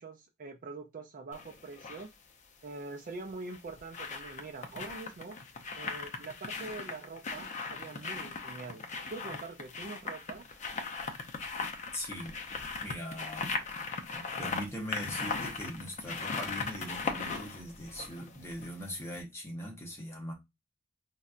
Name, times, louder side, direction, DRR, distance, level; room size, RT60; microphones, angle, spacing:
voice 1, 0.0-2.1 2.6-5.4 5.8-8.8 9.1-10.5, right 3 dB, 40° right, 0.4 m, -44 dB
sound 1, 1.3-2.1 3.3-18.8 19.1-19.2, left 4 dB, 35° left, 0.5 m, -38 dB
voice 2, 11.9-12.4 12.8-13.5 14.1-20.3, equal, 10° left, 0.8 m, -41 dB
4.0 x 2.1 x 2.4 m
head